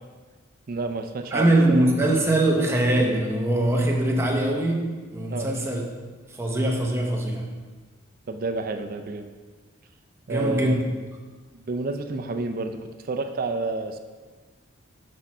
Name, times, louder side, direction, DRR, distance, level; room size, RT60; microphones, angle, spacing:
voice 1, 0.7-1.8 5.3-5.5 8.3-9.3 10.3-10.8 11.5-14.0, right 3 dB, 45° right, 7 dB, 0.4 m, -29 dB
voice 2, 1.3-5.8 6.3-7.6 10.3-10.8, right 1 dB, 10° right, 0 dB, 0.8 m, -22 dB
6.2 x 6.0 x 4.3 m, 1.4 s
head